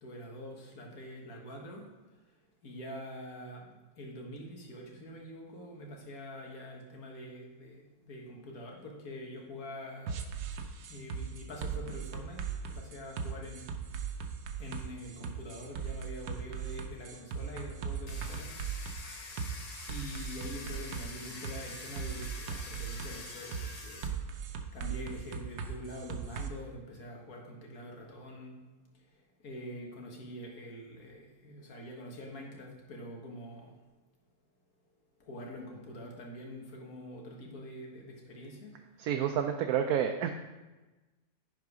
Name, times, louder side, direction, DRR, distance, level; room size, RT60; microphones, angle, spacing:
voice 1, 0.0-1.8 2.6-10.3 10.9-13.7 14.6-18.6 19.9-24.1 24.7-28.6 29.4-33.7 35.2-38.7, equal, 70° left, 0 dB, 1.9 m, -45 dB
sound 1, 10.1-26.5, right 6 dB, 90° right, 1.3 m, -39 dB
Domestic sounds home sounds, 18.1-24.1, left 3 dB, 40° left, 0.6 m, -46 dB
voice 2, 39.0-40.3, right 9 dB, 75° right, 5 dB, 1.0 m, -29 dB
10.5 x 4.7 x 4.7 m, 1.2 s
omnidirectional pair, 1.6 m